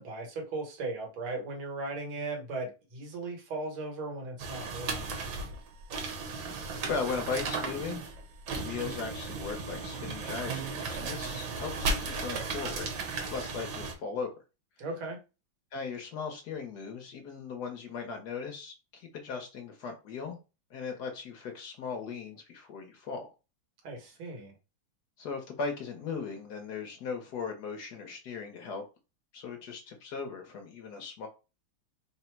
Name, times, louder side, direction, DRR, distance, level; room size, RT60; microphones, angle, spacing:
voice 1, 0.0-5.2 14.8-15.2 23.8-24.5, right 2 dB, 85° right, 2 dB, 2.0 m, -37 dB
sound 1, 4.4-13.9, right 3 dB, 65° right, 1.3 m, -35 dB
voice 2, 6.8-8.0 8.5-12.9 13.2-14.3 15.7-20.4 20.7-23.3 25.2-28.8 29.3-31.3, left 5 dB, 65° left, 4 dB, 1.1 m, -38 dB
4.0 x 2.0 x 4.4 m, 0.30 s
omnidirectional pair, 2.3 m